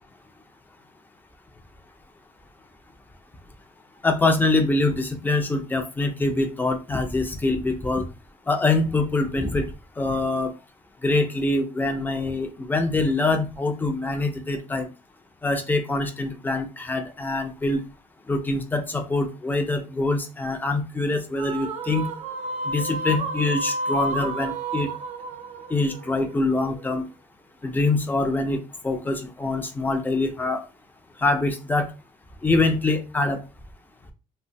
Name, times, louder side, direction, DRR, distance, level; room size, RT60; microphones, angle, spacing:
voice 1, 4.0-8.1 8.5-9.7 10.0-10.5 11.0-14.9 15.4-17.8 18.3-22.1 22.7-24.9 25.7-27.0 27.6-30.6 31.2-31.9 32.4-33.4, left 2 dB, 15° left, 6 dB, 0.5 m, -24 dB
sound 1, 21.4-26.8, right 2 dB, 65° right, 0.6 m, -31 dB
2.9 x 2.1 x 2.6 m, 0.30 s
cardioid pair, 110°, 13 cm